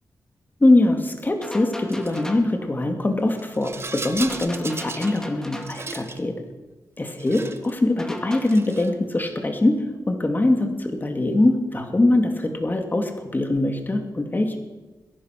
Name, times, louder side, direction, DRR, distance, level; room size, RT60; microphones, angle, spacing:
voice 1, 0.6-6.3 7.0-14.6, left 2 dB, 25° left, 5 dB, 2.4 m, -22 dB
sound 1, 1.4-2.6 4.3-5.8 8.0-8.5, left 1 dB, 10° left, 2.3 m, -37 dB
Rattle, 1.9-2.2 3.3-5.2 5.5-6.2 7.0-7.7 8.3-9.0, right 3 dB, 35° right, 1.6 m, -36 dB
22.0 x 11.0 x 6.0 m, 1.2 s
cardioid pair, 80°, 7 cm